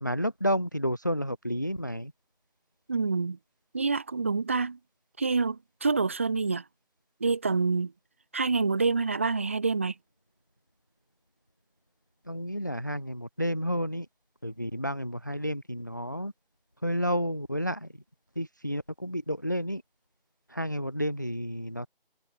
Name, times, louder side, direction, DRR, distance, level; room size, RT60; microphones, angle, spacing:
voice 1, 0.0-2.1 12.3-14.1 14.4-16.3 16.8-17.9 18.4-19.8 20.5-21.9, equal, 20° left, 1.0 m, -31 dB
voice 2, 2.9-3.4 3.7-4.8 5.2-6.7 7.2-7.9 8.3-10.0, right 4 dB, 15° right, 2.0 m, -27 dB
figure-of-eight pair, 175°, 29 cm